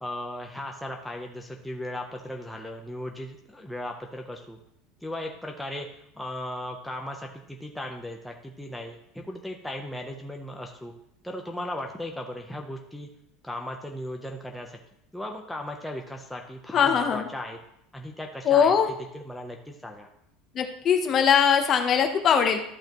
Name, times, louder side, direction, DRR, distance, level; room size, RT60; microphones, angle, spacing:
voice 1, 0.0-4.6 5.0-5.9 6.2-10.9 11.2-13.1 13.4-14.8 15.1-17.6 17.9-18.7 19.1-20.1, left 1 dB, 5° left, 1 dB, 0.6 m, -37 dB
voice 2, 16.7-17.2 18.5-18.9 20.5-22.6, left 7 dB, 30° left, 6 dB, 0.8 m, -21 dB
12.5 x 5.6 x 3.0 m, 0.78 s
cardioid pair, 160°, 0 cm